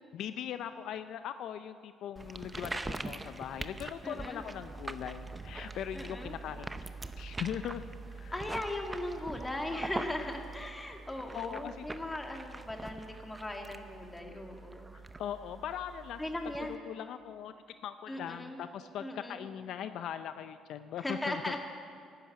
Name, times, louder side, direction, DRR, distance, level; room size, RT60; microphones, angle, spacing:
voice 1, 0.1-6.8 7.2-7.8 8.1-8.3 11.3-12.0 15.2-16.2 16.6-17.5 17.8-21.6, left 9 dB, 70° left, 11 dB, 0.5 m, -40 dB
sound 1, 2.2-16.8, right 3 dB, 15° right, 0.7 m, -43 dB
voice 2, 4.0-4.4 5.9-6.4 8.3-14.9 16.2-16.8 18.1-18.6 19.0-19.5 21.0-21.6, left 1 dB, 15° left, 2 dB, 2.1 m, -38 dB
12.0 x 11.5 x 8.6 m, 2.3 s
cardioid pair, 95°, 0 cm